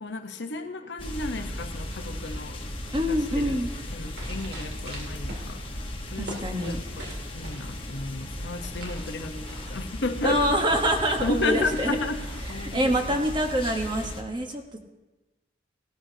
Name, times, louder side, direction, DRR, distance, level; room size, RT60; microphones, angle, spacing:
voice 1, 0.0-2.6 3.1-3.6 3.9-5.6 6.1-10.5 11.2-13.2, left 2 dB, 75° left, 6 dB, 1.0 m, -33 dB
sound 1, 1.0-14.2, left 1 dB, 30° left, 1.2 m, -36 dB
voice 2, 2.9-3.7 6.2-6.8 10.2-12.0 12.4-14.8, equal, 25° right, 4 dB, 1.1 m, -26 dB
sound 2, 4.0-12.8, right 1 dB, 60° right, 2.6 m, -45 dB
18.5 x 13.0 x 2.8 m, 1.1 s
head